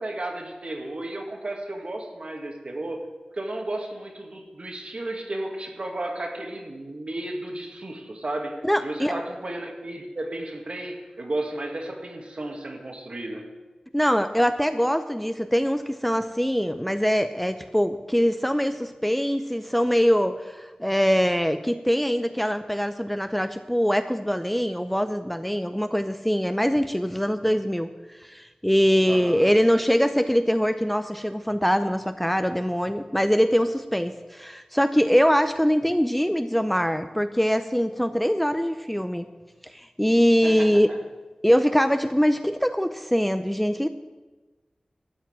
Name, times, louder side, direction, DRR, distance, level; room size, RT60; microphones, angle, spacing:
voice 1, 0.0-3.0 3.3-13.5 29.1-29.5 40.4-41.0, right 1 dB, 55° right, 2 dB, 1.9 m, -33 dB
voice 2, 8.6-9.2 13.9-27.9 28.2-39.3 40.0-40.9 41.4-43.9, equal, 5° left, 9 dB, 0.5 m, -23 dB
12.5 x 5.8 x 8.6 m, 1.2 s
wide cardioid pair, 65°, 2 cm